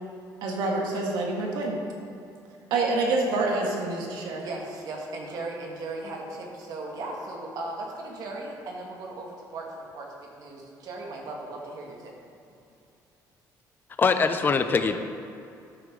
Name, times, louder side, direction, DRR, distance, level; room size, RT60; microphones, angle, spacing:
voice 1, 0.4-1.8 2.7-4.4, right 3 dB, 85° right, -1 dB, 1.7 m, -27 dB
voice 2, 4.4-12.1, right 2 dB, 60° right, -1 dB, 1.7 m, -37 dB
voice 3, 14.0-15.0, left 5 dB, 30° left, 9 dB, 0.5 m, -22 dB
13.0 x 6.2 x 3.8 m, 2.6 s
cardioid pair, 130°, 7 cm